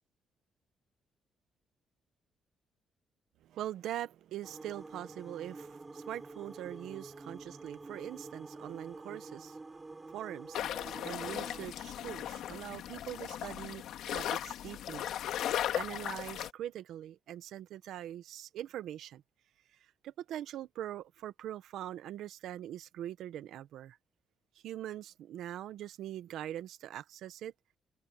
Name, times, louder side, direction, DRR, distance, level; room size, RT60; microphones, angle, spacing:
voice 1, 3.4-9.6 10.1-10.6 11.0-15.0 15.7-19.2 20.0-24.0 24.6-27.5, right 12 dB, 80° right, 1.3 m, -42 dB
sound 1, 4.4-11.7, right 3 dB, 25° right, 3.8 m, -48 dB
sound 2, 10.5-16.5, left 11 dB, 80° left, 2.3 m, -37 dB
cardioid pair, 90°, 0 cm